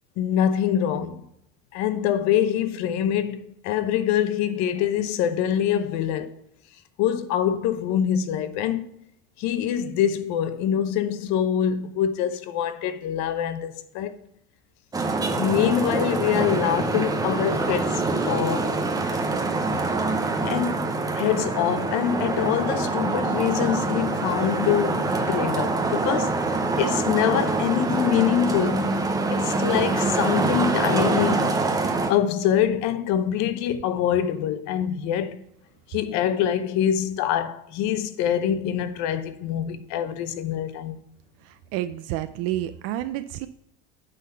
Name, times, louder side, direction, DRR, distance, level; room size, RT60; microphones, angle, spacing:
voice 1, 0.2-1.3 1.7-6.4 7.0-8.8 9.4-14.1 15.4-18.7 20.4-26.4 26.8-28.9 29.3-31.6 32.1-35.4 35.9-41.0, left 10 dB, 60° left, 0.8 m, -25 dB
Traffic noise roadway noise, 14.9-32.1, right 3 dB, 10° right, 0.6 m, -25 dB
voice 2, 41.4-43.5, right 13 dB, 55° right, 0.4 m, -30 dB
9.1 x 4.0 x 5.5 m
cardioid pair, 165°, 31 cm